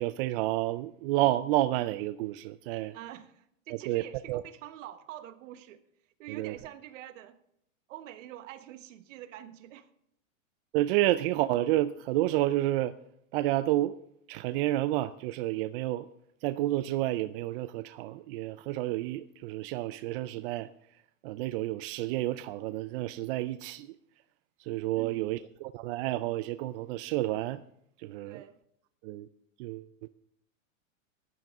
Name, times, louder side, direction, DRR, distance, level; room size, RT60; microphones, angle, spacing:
voice 1, 0.0-2.9 3.9-4.0 4.3-4.4 6.3-6.6 10.7-12.9 13.3-14.0 14.3-16.1 16.4-20.7 21.2-24.0 24.6-27.6 28.0-28.4 29.0-29.3 29.6-30.1, right 15 dB, 45° right, 0.5 m, -30 dB
voice 2, 2.9-5.8 6.2-7.4 7.9-9.9 24.9-25.4 28.2-28.6, right 12 dB, 65° right, 1.3 m, -46 dB
15.5 x 11.0 x 3.6 m
supercardioid pair, 135°, 40 cm